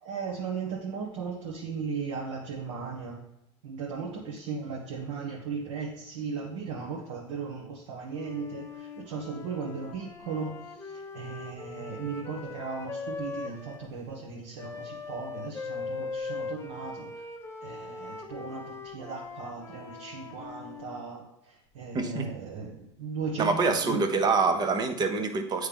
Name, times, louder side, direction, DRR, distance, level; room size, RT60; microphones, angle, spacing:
voice 1, 0.0-3.1 3.6-17.2 17.6-24.0, right 5 dB, 75° right, -2 dB, 1.2 m, -37 dB
Wind instrument woodwind instrument, 8.1-13.9 14.6-21.1, left 4 dB, 15° left, 0.7 m, -40 dB
voice 2, 21.9-22.3 23.4-25.7, right 4 dB, 25° right, 7 dB, 0.8 m, -26 dB
8.6 x 3.2 x 3.5 m, 0.89 s
supercardioid pair, 115°, 15 cm